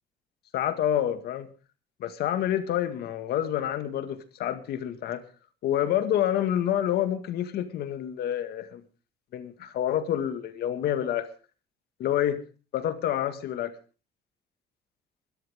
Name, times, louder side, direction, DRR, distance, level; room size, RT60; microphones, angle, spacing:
voice 1, 0.5-1.5 2.0-5.2 5.6-8.8 9.3-11.3 12.0-12.4 12.7-13.7, left 11 dB, 70° left, 2.0 m, -28 dB
22.5 x 13.0 x 3.7 m
cardioid pair, 110°, 17 cm